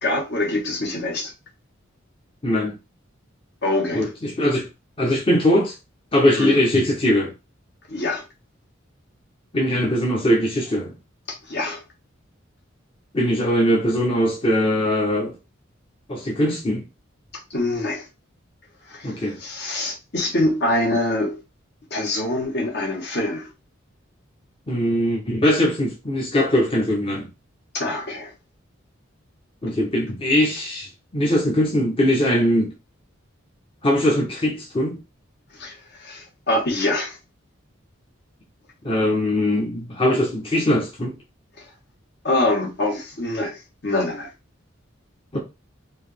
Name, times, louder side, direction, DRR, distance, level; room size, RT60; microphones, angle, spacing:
voice 1, 0.0-1.3 3.6-4.1 6.4-6.6 7.9-8.2 11.3-11.8 17.5-18.1 18.9-21.4 21.9-23.5 27.7-28.3 35.5-37.2 42.2-44.3, left 1 dB, 55° left, 1.5 m, -25 dB
voice 2, 2.4-2.7 3.9-4.7 5.0-5.7 6.1-7.3 9.5-10.9 13.1-15.3 16.1-16.8 19.0-19.4 24.7-27.3 29.6-32.7 33.8-35.0 38.8-41.1 45.3-45.4, left 1 dB, 30° left, 0.9 m, -21 dB
4.6 x 2.8 x 3.4 m
head